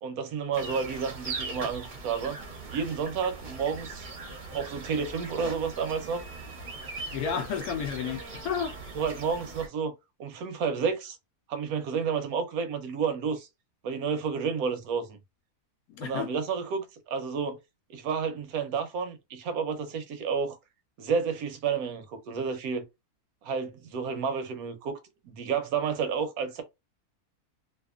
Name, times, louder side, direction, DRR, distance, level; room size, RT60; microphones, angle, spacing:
voice 1, 0.0-2.4 2.7-4.1 4.5-6.3 8.9-9.9 10.2-11.2 11.5-13.5 13.8-15.2 16.0-17.6 17.9-20.6 21.0-22.8 23.4-25.0 25.2-26.6, right 6 dB, 80° right, 1.1 m, -30 dB
sound 1, 0.5-9.7, right 3 dB, 45° right, 0.7 m, -40 dB
voice 2, 7.1-8.7 15.9-16.3, left 7 dB, 90° left, 1.1 m, -31 dB
2.7 x 2.4 x 2.3 m
omnidirectional pair, 1.5 m